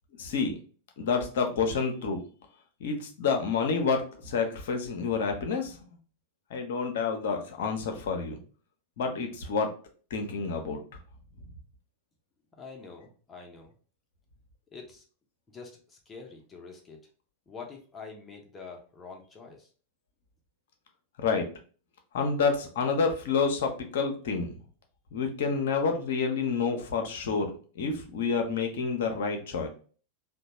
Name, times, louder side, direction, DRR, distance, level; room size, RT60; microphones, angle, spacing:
voice 1, 0.2-0.6 1.0-2.2 2.8-5.8 6.5-8.4 9.0-9.7 10.1-10.8 21.2-21.5 22.1-24.6 25.1-27.5 27.7-29.7, left 5 dB, 55° left, 4 dB, 0.6 m, -28 dB
voice 2, 12.6-13.7 14.7-15.0 15.5-17.0 17.5-19.7, left 4 dB, 20° left, 1 dB, 0.7 m, -46 dB
2.9 x 2.2 x 2.8 m, 0.40 s
figure-of-eight pair, 90°, 0 cm